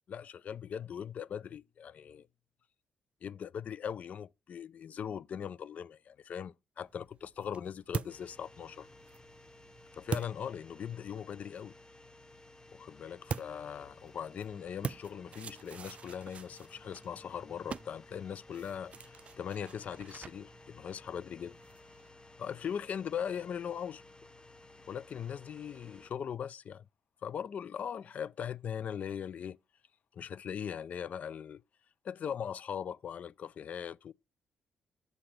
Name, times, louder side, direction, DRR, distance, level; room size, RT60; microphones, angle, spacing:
voice 1, 0.1-2.3 3.2-8.9 9.9-11.7 12.7-21.6 22.4-24.0 24.9-26.9 27.2-29.6 30.1-31.6 32.0-34.1, left 8 dB, 55° left, 0.4 m, -40 dB
sound 1, 6.8-11.2 13.3-22.1, right 6 dB, 45° right, 0.3 m, -44 dB
sound 2, 8.1-26.1, left 2 dB, 30° left, 0.9 m, -56 dB
6.9 x 5.9 x 5.0 m
cardioid pair, 85°, 3 cm